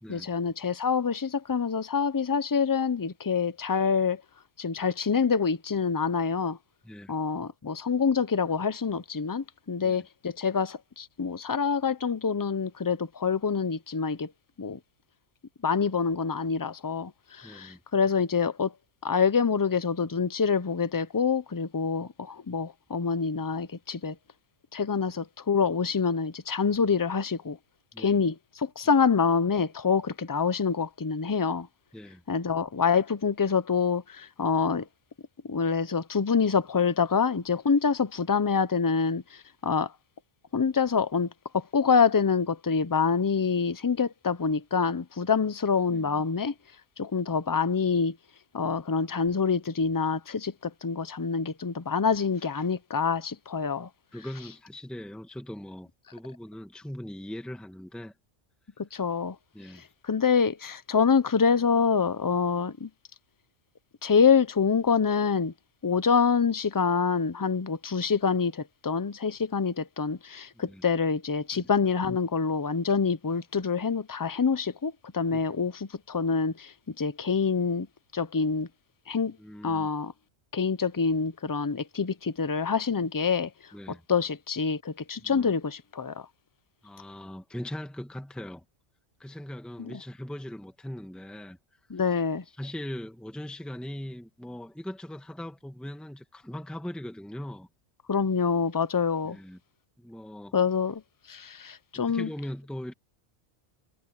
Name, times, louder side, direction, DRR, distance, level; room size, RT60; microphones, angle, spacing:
voice 1, 0.1-4.2 4.6-6.6 7.1-14.3 14.6-14.8 15.6-18.7 19.0-24.2 24.7-27.6 28.0-31.7 32.3-34.9 35.4-39.9 40.5-46.5 47.0-48.2 48.5-53.9 58.8-59.4 60.0-62.9 64.0-65.5 65.8-77.9 78.1-78.7 79.1-79.4 79.6-80.1 80.5-83.5 84.1-86.3 89.8-89.9 91.9-92.4 98.1-99.4 100.5-101.0 101.3-102.3, left 5 dB, 25° left, 0.5 m, -26 dB
voice 2, 17.4-17.8 27.9-28.2 28.8-28.9 31.9-32.2 45.9-46.2 54.1-58.1 59.5-59.8 70.5-70.8 71.5-71.7 75.3-75.4 79.4-79.9 83.7-84.0 85.2-85.5 86.8-88.6 89.2-91.6 92.6-97.7 99.2-99.6 100.0-100.6 101.9-102.9, left 1 dB, ahead, 1.6 m, -40 dB
omnidirectional pair, 1.2 m